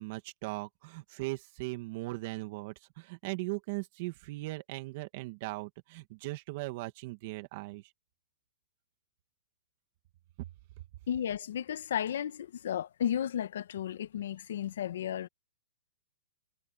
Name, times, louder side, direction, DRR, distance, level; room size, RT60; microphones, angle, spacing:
voice 1, 0.0-7.9, right 21 dB, 35° right, 2.5 m, -39 dB
voice 2, 11.1-15.3, left 9 dB, 60° left, 1.8 m, -33 dB
hypercardioid pair, 165°, 0 cm